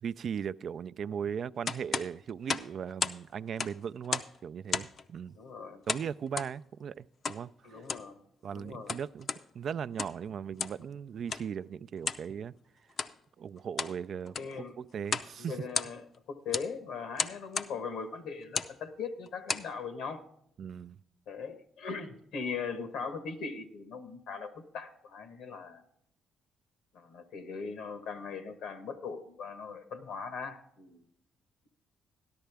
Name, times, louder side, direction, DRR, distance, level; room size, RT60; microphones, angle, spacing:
voice 1, 0.0-5.3 5.9-7.8 8.4-12.5 13.4-15.6 20.6-21.0, right 7 dB, 60° right, 0.3 m, -38 dB
sound 1, 1.7-3.2 3.5-4.4 4.7-5.1 5.9-6.5 7.2-7.4 7.8-8.1 8.7-9.4 9.9-10.2 10.6-10.8 11.3-11.5 12.0-12.3 12.9-13.2 13.6-14.0 14.3-14.6 15.1-15.3 15.6-16.2 16.5-16.7 17.2-17.7 18.4-18.8 19.3-19.7, left 5 dB, 55° left, 0.6 m, -34 dB
voice 2, 5.3-5.8 7.6-8.2 8.5-9.0 14.4-14.8 15.4-20.2 21.3-25.8 26.9-31.0, left 5 dB, 80° left, 1.2 m, -40 dB
13.0 x 11.5 x 3.4 m
supercardioid pair, 65°, 0 cm